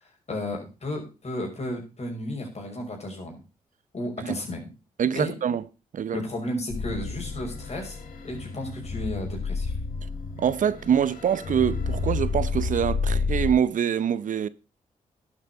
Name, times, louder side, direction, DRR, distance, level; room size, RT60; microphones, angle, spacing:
voice 1, 0.3-3.4 3.9-4.6 5.1-5.3 6.1-8.0 8.2-9.7, left 1 dB, 50° left, 6.0 m, -33 dB
voice 2, 5.0-5.6 5.9-6.2 10.4-14.5, right 8 dB, 65° right, 0.7 m, -25 dB
sound 1, 6.7-13.5, left 4 dB, 75° left, 2.7 m, -30 dB
11.5 x 8.2 x 5.5 m
supercardioid pair, 55°, 14 cm